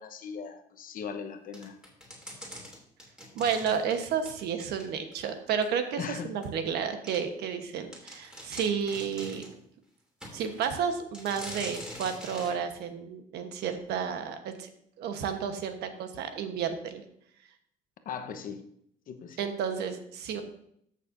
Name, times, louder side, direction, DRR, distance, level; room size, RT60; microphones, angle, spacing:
voice 1, 0.0-1.8 6.0-6.3 18.0-18.6 19.1-19.4, left 7 dB, 55° left, 7 dB, 1.1 m, -38 dB
sound 1, 1.5-5.2 5.6-5.7 6.4-6.5 7.1-7.2 7.6-7.7 7.9-9.6 10.2-10.7 11.1-12.6, equal, 5° right, 2.9 m, -44 dB
voice 2, 3.3-9.4 10.3-14.7 15.0-17.0 19.4-20.4, right 7 dB, 80° right, 7 dB, 1.1 m, -31 dB
14.0 x 6.6 x 2.6 m, 0.70 s
cardioid pair, 110°, 17 cm